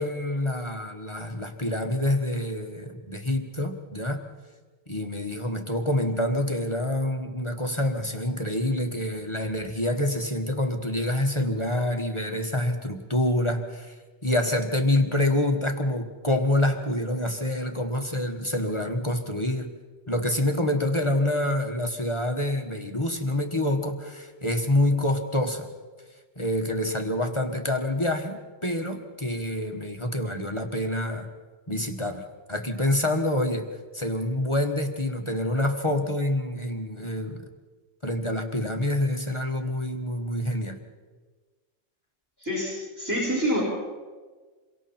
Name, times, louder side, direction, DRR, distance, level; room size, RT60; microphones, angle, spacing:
voice 1, 0.0-4.2 4.9-13.9 14.2-19.7 20.1-25.7 26.4-31.3 31.7-33.7 33.9-37.4 38.0-40.8, left 1 dB, 25° left, 3 dB, 1.5 m, -27 dB
voice 2, 42.4-43.6, equal, 15° right, -5 dB, 5.7 m, -27 dB
28.0 x 23.5 x 4.4 m, 1.4 s
omnidirectional pair, 1.2 m